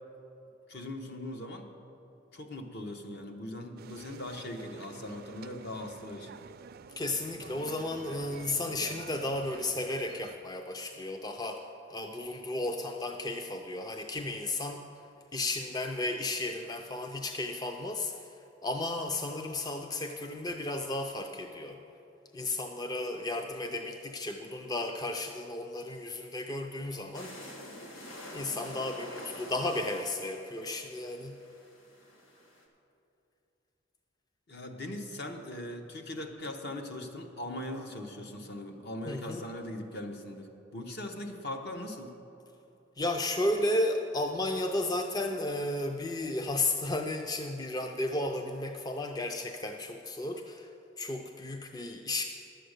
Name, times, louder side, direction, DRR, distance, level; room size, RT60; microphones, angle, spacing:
voice 1, 0.7-1.7 2.3-6.4 34.5-42.1, left 1 dB, 55° left, 4 dB, 1.0 m, -40 dB
sound 1, 3.8-10.4, right 5 dB, 50° right, 0.4 m, -49 dB
voice 2, 7.0-11.6 11.9-14.8 15.3-18.3 18.6-21.8 22.3-27.3 28.3-31.4 39.1-39.4 43.0-50.7 51.0-52.3, left 2 dB, 20° left, 4 dB, 0.4 m, -33 dB
sound 2, 27.1-32.6, left 1 dB, 90° left, 1.5 m, -47 dB
11.0 x 7.7 x 6.6 m, 2.9 s
head